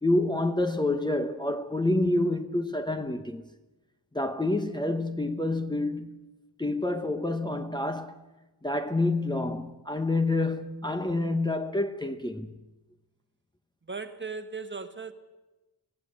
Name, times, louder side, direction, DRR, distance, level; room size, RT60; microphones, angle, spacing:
voice 1, 0.0-3.4 4.1-6.2 6.6-8.2 8.6-12.5, left 2 dB, 10° left, 0.9 m, -28 dB
voice 2, 13.9-15.1, right 4 dB, 25° right, 1.3 m, -37 dB
26.0 x 16.5 x 7.8 m
wide cardioid pair, 150°, 41 cm